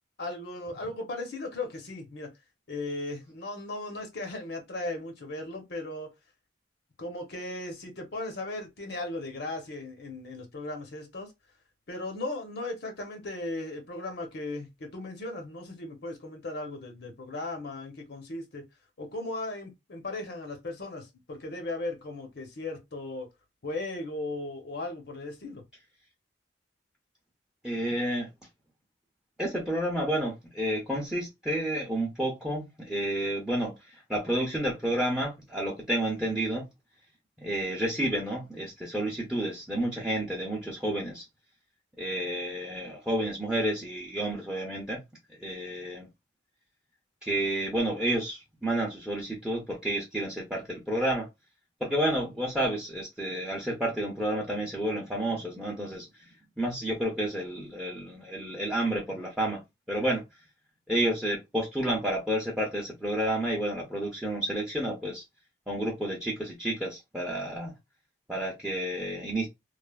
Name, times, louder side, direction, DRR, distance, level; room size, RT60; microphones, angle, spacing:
voice 1, 0.2-2.3 2.7-6.1 7.0-11.3 11.9-18.6 19.0-23.3 23.6-25.6, left 2 dB, 60° left, 0.7 m, -37 dB
voice 2, 27.6-28.3 29.4-36.6 37.4-41.2 42.0-45.0 45.4-46.1 47.2-51.3 51.8-56.3 56.6-59.6 59.9-60.2 60.9-65.2 65.7-67.7 68.3-69.5, right 1 dB, 5° right, 0.6 m, -30 dB
3.1 x 2.1 x 2.2 m
head